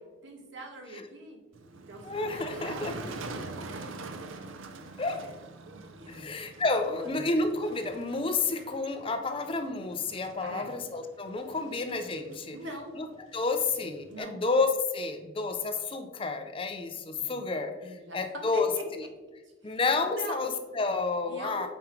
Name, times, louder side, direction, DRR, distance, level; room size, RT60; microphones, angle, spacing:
voice 1, 0.2-1.4 1.9-4.3 4.7-5.3 5.7-6.3 6.9-7.3 10.4-10.7 12.5-13.0 14.1-14.4 17.2-17.4 17.8-18.2 18.5-18.8 19.4-20.5 21.2-21.7, right 1 dB, 65° right, 2 dB, 1.3 m, -44 dB
Motor vehicle (road), 1.5-14.2, right 3 dB, 80° right, 0.6 m, -45 dB
voice 2, 2.0-2.9 5.0-5.2 6.1-12.6 13.0-13.1 13.3-18.7 19.6-21.7, left 3 dB, 25° left, 7 dB, 0.5 m, -30 dB
8.5 x 4.8 x 3.2 m, 1.2 s
head